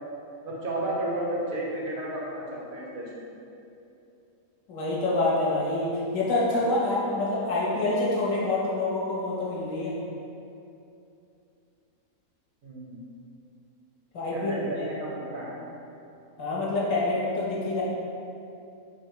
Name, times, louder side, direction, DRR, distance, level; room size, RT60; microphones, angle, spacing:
voice 1, 0.4-3.3 12.6-13.0 14.3-15.7, right 1 dB, 55° right, -4 dB, 0.6 m, -32 dB
voice 2, 4.7-10.0 14.1-14.9 16.4-17.8, left 2 dB, 65° left, -6 dB, 1.2 m, -27 dB
4.4 x 2.2 x 4.7 m, 2.7 s
omnidirectional pair, 1.6 m